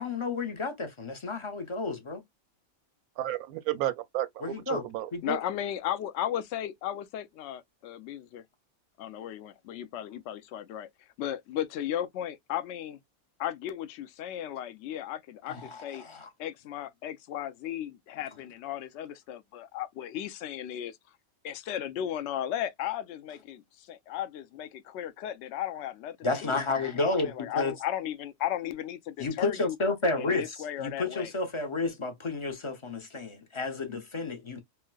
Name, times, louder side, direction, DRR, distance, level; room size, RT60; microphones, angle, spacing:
voice 1, 0.0-2.2 4.4-4.8 5.1-5.4 15.5-16.3 26.2-27.7 29.2-30.5 30.8-34.6, left 3 dB, 35° left, 0.5 m, -31 dB
voice 2, 3.2-5.1, right 13 dB, 90° right, 1.1 m, -32 dB
voice 3, 5.2-8.4 9.0-10.9 11.2-13.0 13.4-16.0 16.4-21.0 21.4-26.6 27.0-29.8 30.2-31.3, left 11 dB, 65° left, 0.8 m, -35 dB
4.4 x 2.1 x 2.3 m
omnidirectional pair, 1.5 m